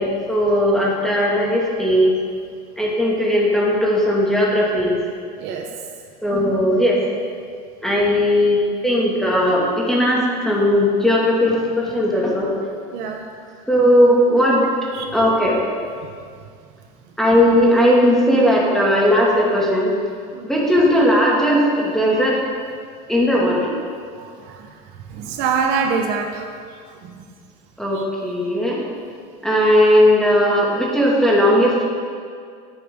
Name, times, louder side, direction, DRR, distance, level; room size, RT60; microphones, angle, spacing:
voice 1, 0.0-2.1 2.8-5.0 6.2-7.0 7.8-12.5 13.7-14.7 15.1-15.6 17.2-19.9 20.4-22.4 23.1-23.7 27.8-28.8 29.4-31.9, equal, ahead, -4 dB, 2.2 m, -17 dB
voice 2, 24.1-24.7 25.1-26.5 27.9-28.0, right 5 dB, 70° right, 2 dB, 1.2 m, -24 dB
11.5 x 8.9 x 3.8 m, 2.2 s
supercardioid pair, 125°, 18 cm